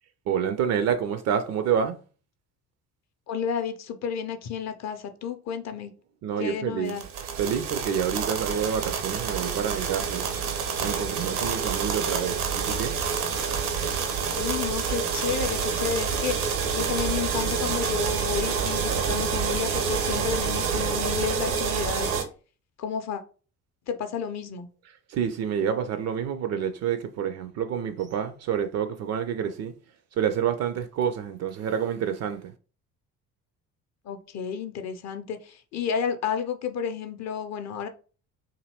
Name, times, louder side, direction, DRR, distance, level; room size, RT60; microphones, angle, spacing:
voice 1, 0.3-2.0 6.2-6.9 7.4-10.3 10.8-12.9 25.1-29.7 30.2-32.5, right 8 dB, 40° right, 0.4 m, -28 dB
voice 2, 3.3-5.9 6.4-7.0 14.3-16.3 16.7-22.1 22.8-23.2 23.9-24.7 34.0-37.9, left 7 dB, 40° left, 0.5 m, -31 dB
sound 1, 6.9-22.2, right 6 dB, 70° right, 0.7 m, -28 dB
2.7 x 2.6 x 2.8 m
figure-of-eight pair, 50°, 45 cm